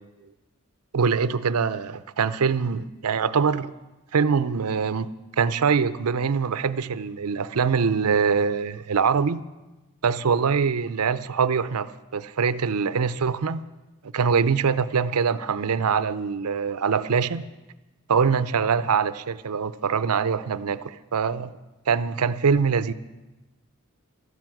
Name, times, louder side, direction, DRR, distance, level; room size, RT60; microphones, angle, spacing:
voice 1, 0.9-3.7 4.1-5.1 5.4-9.4 10.0-13.6 14.1-17.4 18.1-21.5 21.9-22.9, right 6 dB, 85° right, 0.6 m, -23 dB
13.0 x 10.5 x 7.7 m
head